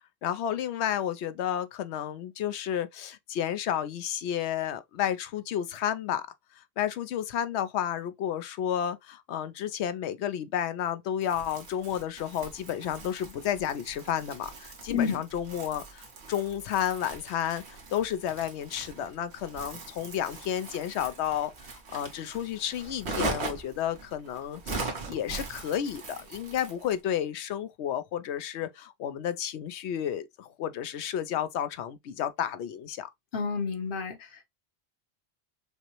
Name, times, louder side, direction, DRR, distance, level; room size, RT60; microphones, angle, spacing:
voice 1, 0.2-6.2 6.6-17.6 17.9-33.1, left 10 dB, 90° left, 0.8 m, -31 dB
Crumpling crinkling, 11.2-27.0, right 3 dB, 85° right, 1.4 m, -40 dB
voice 2, 14.9-15.2 33.3-34.5, left 6 dB, 60° left, 0.9 m, -30 dB
5.2 x 2.0 x 2.9 m
omnidirectional pair, 1.1 m